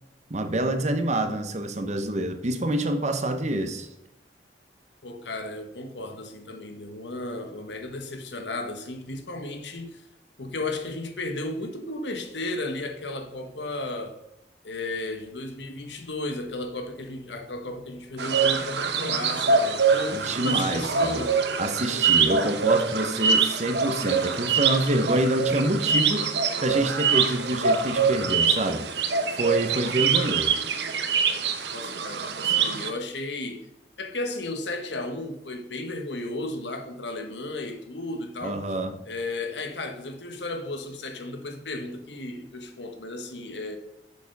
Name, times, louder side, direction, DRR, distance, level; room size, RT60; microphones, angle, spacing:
voice 1, 0.3-3.9 20.1-21.2 21.6-26.3 26.6-28.9 29.3-30.5 38.4-38.9, right 1 dB, 40° right, 0.9 m, -26 dB
voice 2, 5.0-10.0 10.4-14.2 14.6-21.4 31.7-33.7 34.0-38.6 39.0-43.8, left 2 dB, 80° left, 1.3 m, -34 dB
sound 1, 18.2-32.9, right 5 dB, 70° right, 0.9 m, -24 dB
7.0 x 6.7 x 5.3 m
head